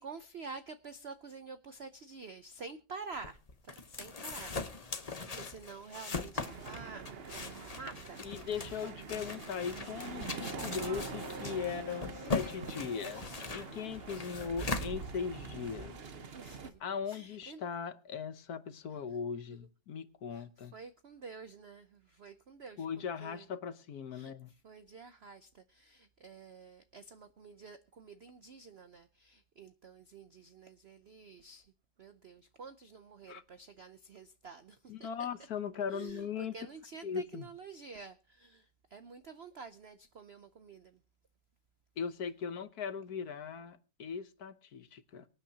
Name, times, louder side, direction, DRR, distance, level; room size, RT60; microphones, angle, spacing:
voice 1, 0.0-8.2 8.6-9.0 10.2-10.3 11.7-12.0 12.2-12.7 16.3-16.8 17.1-17.6 20.3-22.9 23.2-23.5 24.1-31.7 32.0-35.1 35.9-41.0, right 4 dB, 70° right, 0.6 m, -49 dB
sound 1, 3.1-15.6, left 3 dB, 30° left, 0.8 m, -41 dB
sound 2, 6.3-16.7, right 5 dB, 45° right, 0.9 m, -45 dB
voice 2, 8.2-16.1 16.8-20.7 22.8-24.5 33.3-33.4 34.9-36.5 37.0-37.5 42.0-45.3, left 6 dB, 60° left, 1.3 m, -39 dB
Wind instrument woodwind instrument, 10.3-13.2, left 2 dB, 20° right, 4.4 m, -50 dB
24.5 x 9.1 x 2.9 m
omnidirectional pair, 2.0 m